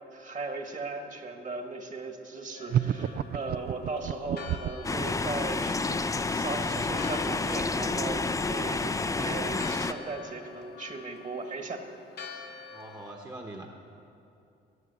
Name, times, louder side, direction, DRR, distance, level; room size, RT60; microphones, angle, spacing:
voice 1, 0.1-11.8, right 3 dB, 40° right, 5 dB, 1.6 m, -37 dB
Church bell, 2.5-13.1, left 7 dB, 55° left, 1.0 m, -47 dB
sound 1, 2.7-4.9, right 10 dB, 55° right, 0.4 m, -29 dB
sound 2, 4.8-9.9, left 3 dB, 15° left, 0.5 m, -29 dB
voice 2, 12.7-13.7, right 2 dB, 20° right, 1 dB, 1.1 m, -42 dB
14.5 x 10.5 x 6.9 m, 2.7 s
cardioid pair, 90°, 20 cm